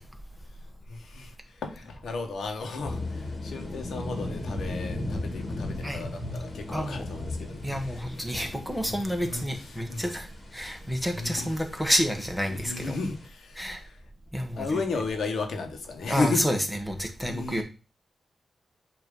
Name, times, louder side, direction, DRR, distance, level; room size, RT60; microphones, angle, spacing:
voice 1, 0.9-8.0 9.2-10.1 11.1-11.5 12.5-14.0 14.6-16.5 17.2-17.6, left 3 dB, 85° left, 1.3 m, -34 dB
sound 1, 2.8-13.3, left 2 dB, 40° left, 1.7 m, -37 dB
voice 2, 6.7-7.1 7.6-10.3 10.5-13.0 13.6-13.8 14.3-14.8 16.1-17.6, equal, ahead, 1.3 m, -29 dB
8.4 x 3.0 x 5.4 m
wide cardioid pair, 105°, 0 cm